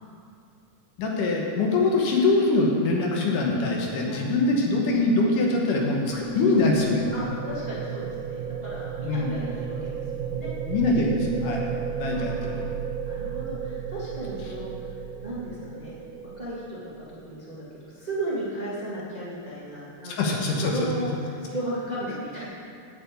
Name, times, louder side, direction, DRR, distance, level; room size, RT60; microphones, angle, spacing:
voice 1, 1.0-7.0 9.0-9.4 10.7-11.6 12.0-12.6 20.0-20.7, left 3 dB, 65° left, -1 dB, 2.5 m, -23 dB
sound 1, 5.2-17.3, right 8 dB, 80° right, 2.3 m, -34 dB
voice 2, 7.1-10.5 12.1-12.7 13.0-14.9 15.2-16.0 16.2-22.4, right 1 dB, 40° right, -8 dB, 0.6 m, -35 dB
8.5 x 7.7 x 8.3 m, 2.4 s
omnidirectional pair, 4.7 m